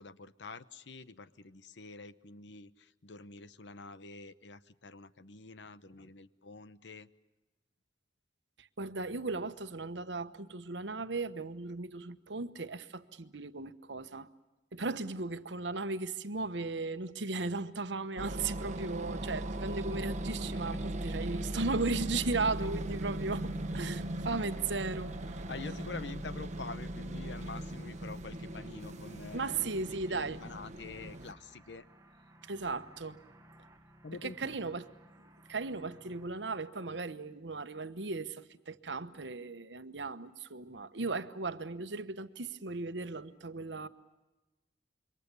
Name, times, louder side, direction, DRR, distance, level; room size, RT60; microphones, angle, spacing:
voice 1, 0.0-7.1 20.5-20.8 24.3-24.7 25.5-29.7 30.1-31.8 34.0-34.7, left 4 dB, 75° left, 0.9 m, -47 dB
voice 2, 8.6-14.3 14.7-25.4 29.3-30.4 32.5-33.2 34.2-34.9 35.5-43.9, right 3 dB, 75° right, 1.1 m, -36 dB
sound 1, 18.2-31.3, right 1 dB, 40° right, 1.1 m, -38 dB
sound 2, 18.5-36.3, right 1 dB, 15° right, 1.4 m, -59 dB
27.0 x 23.5 x 6.9 m
head